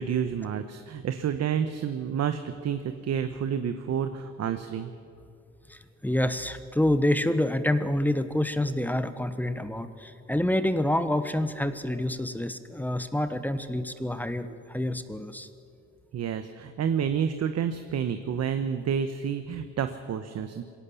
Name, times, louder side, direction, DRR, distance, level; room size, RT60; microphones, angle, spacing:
voice 1, 0.0-4.9 16.1-20.6, right 8 dB, 60° right, 9 dB, 1.0 m, -29 dB
voice 2, 5.7-15.5, left 1 dB, 5° left, 11 dB, 1.1 m, -27 dB
21.5 x 17.0 x 7.1 m, 2.5 s
cardioid pair, 90°, 30 cm